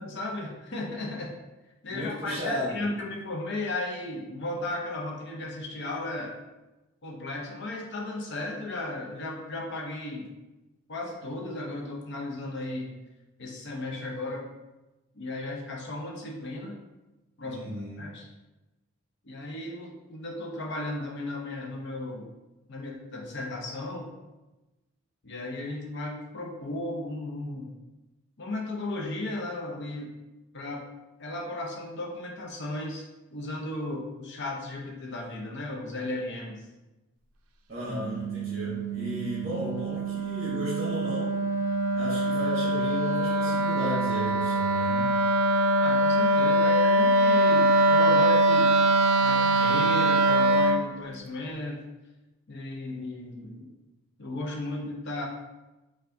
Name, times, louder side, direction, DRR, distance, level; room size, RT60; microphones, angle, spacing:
voice 1, 0.1-1.3 1.8-6.4 7.0-10.3 10.9-12.9 13.4-14.5 15.1-16.8 17.4-17.6 18.0-18.3 19.2-22.3 22.7-24.1 25.2-27.7 28.4-30.1 30.5-30.9 31.2-36.6 45.8-48.8 49.2-51.8 52.5-53.7 54.2-55.2, left 2 dB, 55° left, -1 dB, 0.6 m, -35 dB
voice 2, 1.9-2.8 17.4-18.0 37.7-41.3 41.9-45.1, equal, 35° right, -7 dB, 0.9 m, -34 dB
Wind instrument woodwind instrument, 37.9-50.9, right 1 dB, 85° right, 0.4 m, -23 dB
4.5 x 2.4 x 2.6 m, 1.1 s
head